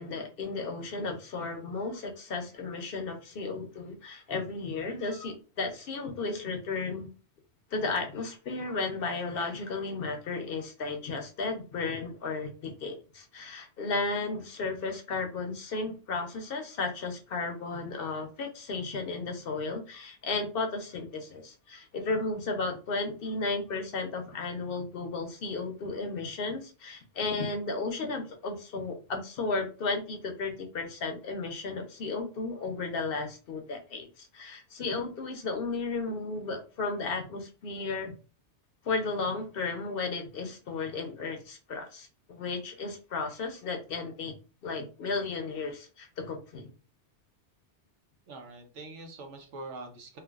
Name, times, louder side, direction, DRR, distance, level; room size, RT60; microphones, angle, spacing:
voice 1, 0.0-7.1 7.7-38.1 38.8-44.3 44.6-46.7, left 3 dB, 60° left, 4 dB, 0.7 m, -34 dB
voice 2, 48.3-50.2, right 2 dB, 85° right, 4 dB, 1.0 m, -44 dB
3.1 x 2.2 x 2.3 m, 0.35 s
omnidirectional pair, 1.2 m